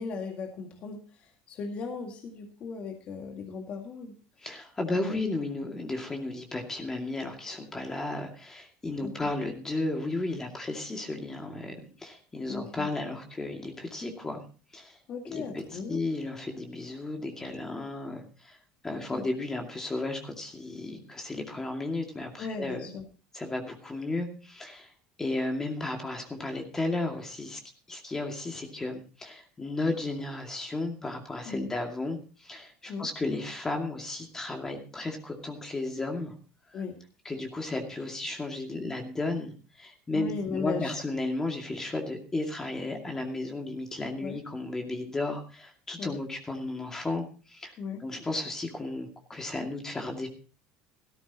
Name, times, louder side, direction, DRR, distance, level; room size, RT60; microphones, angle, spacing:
voice 1, 0.0-4.1 5.1-5.3 9.0-9.1 12.5-12.9 15.1-16.0 18.9-19.3 22.4-23.0 31.5-31.7 32.9-33.1 36.7-37.0 40.1-41.0 44.2-44.4 46.0-46.2 47.8-48.0, left 5 dB, 50° left, 3 dB, 2.1 m, -37 dB
voice 2, 4.4-14.4 14.7-15.0 15.3-18.6 18.8-22.9 23.3-24.9 25.2-27.6 27.9-36.3 36.7-36.8 37.2-47.7 48.0-50.3, left 2 dB, 15° left, 3 dB, 2.3 m, -34 dB
16.5 x 14.0 x 2.9 m, 0.34 s
supercardioid pair, 110°, 3 cm